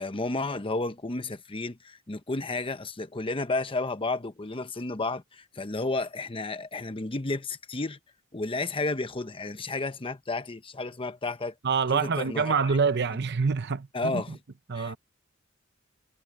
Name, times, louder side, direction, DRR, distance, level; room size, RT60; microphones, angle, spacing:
voice 1, 0.0-8.0 8.3-11.5 11.9-12.5 13.9-14.4 14.7-15.0, left 3 dB, 25° left, 0.9 m, -32 dB
voice 2, 11.6-14.4 14.7-15.0, right 5 dB, 55° right, 0.7 m, -26 dB
head